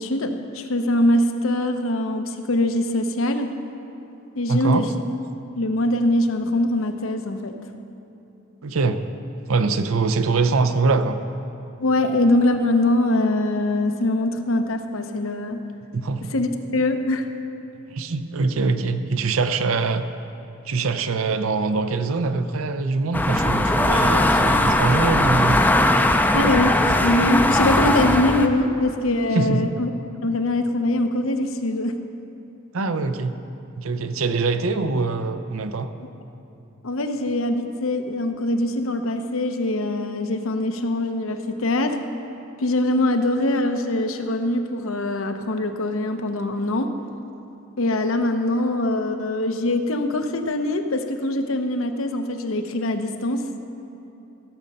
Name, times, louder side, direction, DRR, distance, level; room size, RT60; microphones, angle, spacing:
voice 1, 0.0-3.5 4.3-4.9 5.6-7.6 11.8-15.6 16.3-17.3 26.3-29.9 30.2-32.0 36.0-36.1 36.8-42.0 42.6-46.9 47.8-53.4, left 1 dB, 75° left, 6 dB, 0.8 m, -23 dB
voice 2, 4.5-4.9 8.6-9.0 9.5-11.2 15.9-16.3 17.9-20.0 20.7-25.6 29.3-29.7 32.7-33.3 33.8-35.9, right 4 dB, 80° right, 9 dB, 0.7 m, -23 dB
sound 1, 23.1-28.5, left 1 dB, 10° left, 0.5 m, -19 dB
14.5 x 7.6 x 5.5 m, 2.9 s
head